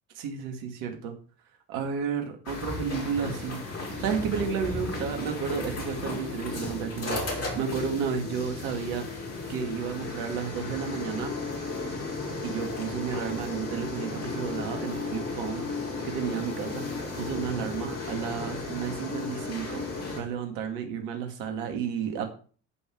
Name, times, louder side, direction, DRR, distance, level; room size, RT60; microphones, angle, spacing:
voice 1, 0.2-1.1 1.7-9.0 9.5-11.3 12.4-15.6 16.0-16.8 17.2-19.8 20.1-22.3, right 7 dB, 75° right, 4 dB, 2.2 m, -32 dB
sound 1, 2.4-20.2, left 2 dB, 45° left, 5.9 m, -35 dB
sound 2, 3.9-18.6, left 8 dB, 75° left, 6.5 m, -43 dB
13.5 x 5.7 x 4.7 m, 0.41 s
hypercardioid pair, 55°, 36 cm